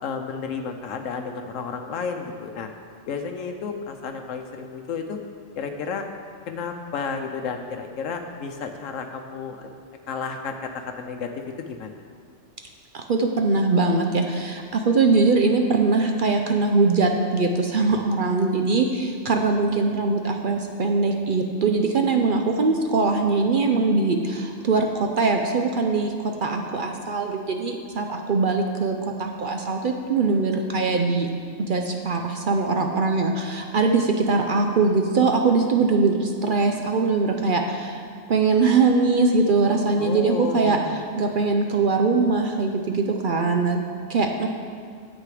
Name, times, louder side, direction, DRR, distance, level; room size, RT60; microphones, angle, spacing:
voice 1, 0.0-2.7 3.1-5.2 5.6-6.1 6.5-9.7 10.1-11.3 11.6-11.9 40.0-41.0, left 5 dB, 90° left, 4 dB, 1.1 m, -32 dB
voice 2, 12.9-24.9 25.2-31.3 31.6-38.0 38.3-40.8 41.2-43.8 44.1-44.5, right 3 dB, 55° right, 3 dB, 0.7 m, -22 dB
9.7 x 7.6 x 4.9 m, 2.2 s
omnidirectional pair, 1.3 m